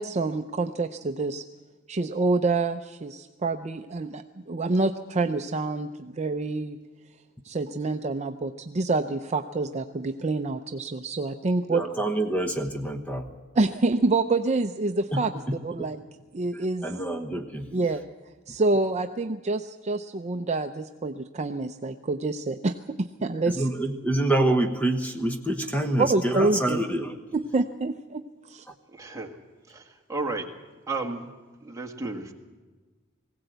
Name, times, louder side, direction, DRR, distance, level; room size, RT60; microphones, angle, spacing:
voice 1, 0.0-1.4 1.9-6.8 7.4-11.9 13.5-15.3 15.6-16.0 16.3-16.9 17.7-18.0 18.5-23.7 26.0-26.8 27.3-28.6, right 3 dB, 35° right, 7 dB, 0.6 m, -27 dB
voice 2, 11.7-13.3 16.8-17.7 23.5-27.2, right 1 dB, 5° left, 5 dB, 1.1 m, -26 dB
voice 3, 28.9-29.3 29.7-30.4 30.9-31.3 31.6-32.3, right 3 dB, 15° right, 2 dB, 1.7 m, -33 dB
20.0 x 16.5 x 8.0 m, 1.3 s
head